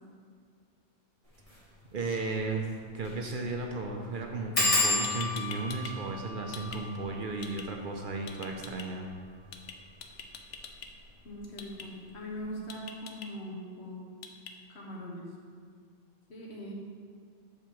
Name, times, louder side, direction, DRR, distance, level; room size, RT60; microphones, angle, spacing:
sound 1, 1.4-1.6 2.0-2.1 2.3-2.4 3.0-3.2 3.5-3.6 4.5-9.8 10.5-11.0 11.3-11.7 11.9-12.0, left 2 dB, 30° left, 1.6 m, -33 dB
voice 1, 1.9-2.7 2.9-9.1, right 3 dB, 55° right, 2 dB, 0.7 m, -34 dB
sound 2, 5.0-5.9 6.2-6.8 7.4-7.6 8.3-8.8 9.5-9.7 10.0-10.9 11.6-11.8 12.7-13.3 14.2-14.5, left 7 dB, 80° left, 1.0 m, -43 dB
voice 2, 11.2-14.0 14.7-15.2 16.3-16.7, equal, 65° left, -3 dB, 1.3 m, -41 dB
7.3 x 5.1 x 4.5 m, 2.2 s
omnidirectional pair, 1.2 m